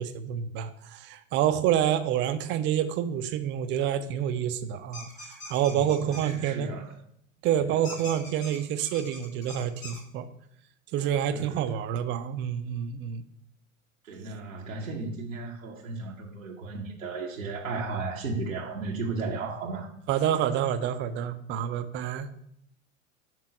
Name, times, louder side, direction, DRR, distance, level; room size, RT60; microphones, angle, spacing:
voice 1, 0.0-5.1 5.5-6.7 7.4-10.3 10.9-13.2 20.1-22.3, right 10 dB, 30° right, 10 dB, 0.4 m, -28 dB
sound 1, 4.9-6.3 7.8-10.0, left 2 dB, 80° left, 2.2 m, -43 dB
voice 2, 5.7-6.9 7.6-7.8 11.3-11.8 14.0-19.9, right 3 dB, 90° right, -2 dB, 0.8 m, -35 dB
6.0 x 3.6 x 5.1 m, 0.70 s
hypercardioid pair, 90°, 39 cm